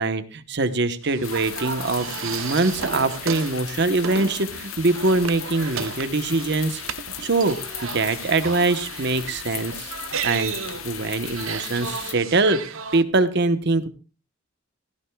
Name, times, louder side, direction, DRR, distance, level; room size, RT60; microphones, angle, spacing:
voice 1, 0.0-6.8 7.2-9.9 10.2-10.6 10.8-12.6 12.9-13.9, right 3 dB, 55° right, 10 dB, 1.0 m, -23 dB
sound 1, 1.0-13.0, right 7 dB, 80° right, 0.8 m, -34 dB
sound 2, 1.1-6.6 7.2-12.5, left 1 dB, 35° left, 6.7 m, -50 dB
sound 3, 1.2-12.2, left 11 dB, 80° left, 0.7 m, -37 dB
16.0 x 16.0 x 2.3 m, 0.34 s
head